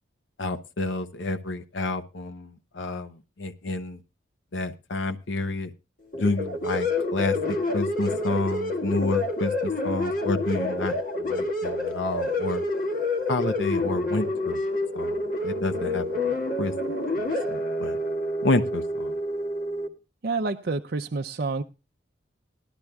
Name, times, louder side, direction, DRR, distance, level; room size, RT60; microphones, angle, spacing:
voice 1, 0.4-4.0 4.5-5.7 6.2-7.4 7.7-12.6 13.3-14.6 14.9-18.0 18.4-19.2, left 2 dB, 75° left, 9 dB, 0.8 m, -30 dB
sound 1, 6.1-19.9, left 2 dB, 45° left, 1.8 m, -28 dB
voice 2, 20.2-21.6, right 3 dB, 55° right, 4 dB, 0.5 m, -28 dB
19.0 x 12.0 x 2.3 m, 0.28 s
head